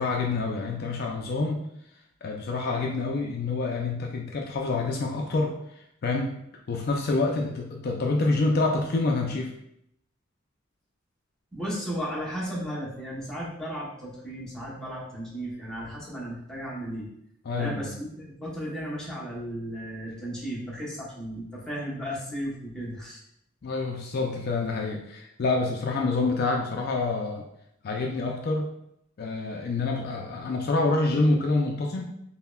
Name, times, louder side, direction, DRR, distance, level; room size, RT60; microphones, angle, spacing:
voice 1, 0.0-1.6 2.2-5.5 6.0-6.4 6.7-9.5 17.5-17.9 23.6-27.4 27.8-28.7 29.2-32.0, left 3 dB, 50° left, 1 dB, 0.4 m, -27 dB
voice 2, 11.5-17.1 17.6-23.2, equal, 5° left, -6 dB, 0.9 m, -35 dB
5.5 x 2.1 x 2.3 m, 0.76 s
head